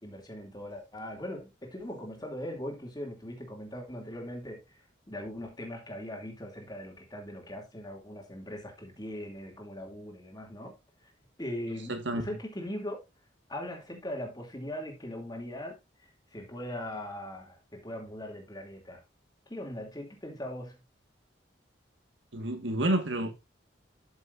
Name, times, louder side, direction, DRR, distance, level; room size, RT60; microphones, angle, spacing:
voice 1, 0.0-10.7 11.0-11.1 11.4-13.0 13.5-19.0 19.5-20.8, left 1 dB, 20° left, 2.7 m, -40 dB
voice 2, 11.9-12.3 22.3-23.4, right 1 dB, 75° right, 1.8 m, -29 dB
12.5 x 7.0 x 2.6 m
head